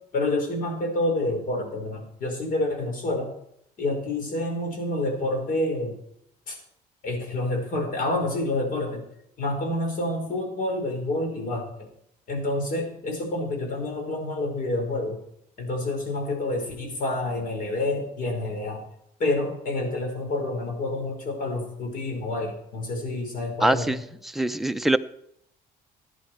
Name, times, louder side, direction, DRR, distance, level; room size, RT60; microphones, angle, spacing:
voice 1, 0.1-3.3 3.8-6.0 6.5-6.6 7.0-9.0 9.4-11.7 12.3-15.2 15.6-18.8 19.2-24.0, left 2 dB, 55° left, 3 dB, 4.9 m, -28 dB
voice 2, 23.6-24.0 24.3-25.0, right 1 dB, ahead, 8 dB, 0.6 m, -22 dB
15.5 x 10.5 x 4.6 m, 0.76 s
cardioid pair, 110°, 17 cm